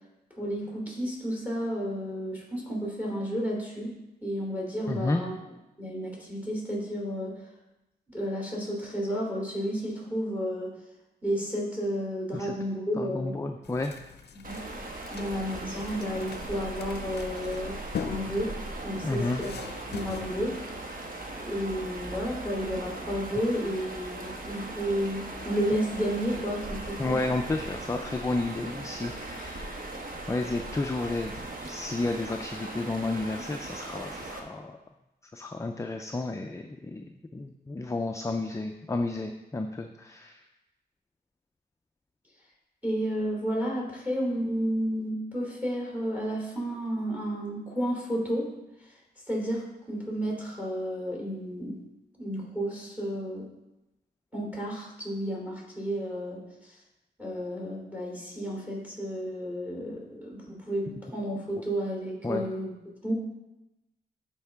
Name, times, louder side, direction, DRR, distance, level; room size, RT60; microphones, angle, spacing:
voice 1, 0.4-3.9 4.2-5.3 5.8-7.4 8.1-10.7 11.2-13.3 14.3-14.6 15.1-17.8 18.0-18.5 18.8-19.5 19.9-20.6 21.3-27.2 42.8-48.5 49.3-51.8 52.2-53.5 54.3-56.7 57.2-62.7 63.0-63.1, equal, 10° right, -2 dB, 3.1 m, -32 dB
voice 2, 4.9-5.2 12.3-12.5 13.0-13.9 19.0-19.4 27.0-30.0 30.3-34.8 35.3-40.4 62.2-62.5, left 2 dB, 15° left, 5 dB, 0.4 m, -32 dB
sound 1, 13.6-20.3, left 7 dB, 75° left, 0.5 m, -42 dB
sound 2, 14.4-34.4, right 2 dB, 55° right, 1.1 m, -39 dB
12.0 x 4.5 x 3.5 m, 0.96 s
wide cardioid pair, 90°, 17 cm